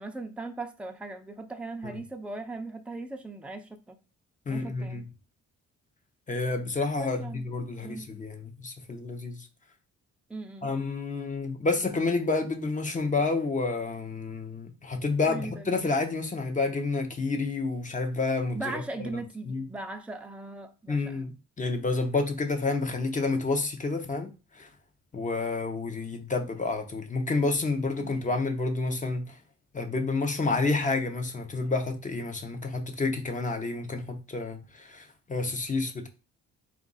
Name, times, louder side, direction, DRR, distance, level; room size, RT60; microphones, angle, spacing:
voice 1, 0.0-4.0 4.5-5.0 7.0-7.4 7.8-8.1 10.3-10.7 15.3-15.7 18.5-21.3 28.0-28.2, right 2 dB, 5° right, 0.5 m, -39 dB
voice 2, 4.5-5.0 6.3-9.5 10.6-18.8 19.5-19.7 20.9-24.7 25.1-29.3 29.7-36.1, left 3 dB, 25° left, 0.8 m, -29 dB
4.0 x 2.5 x 3.9 m
cardioid pair, 90°, 30 cm